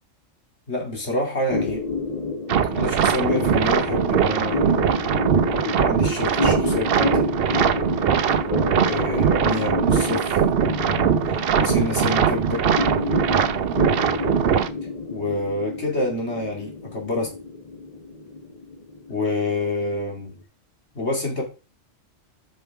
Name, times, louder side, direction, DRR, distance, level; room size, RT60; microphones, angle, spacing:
voice 1, 0.7-1.8 2.7-4.9 5.6-7.3 8.9-12.6 15.1-17.3 19.1-20.4 20.9-21.4, left 2 dB, 60° left, 2.6 m, -28 dB
sound 1, 1.5-20.3, left 3 dB, 35° left, 0.8 m, -29 dB
sound 2, 2.5-14.7, right 8 dB, 55° right, 0.8 m, -21 dB
7.1 x 5.5 x 4.6 m
omnidirectional pair, 1.3 m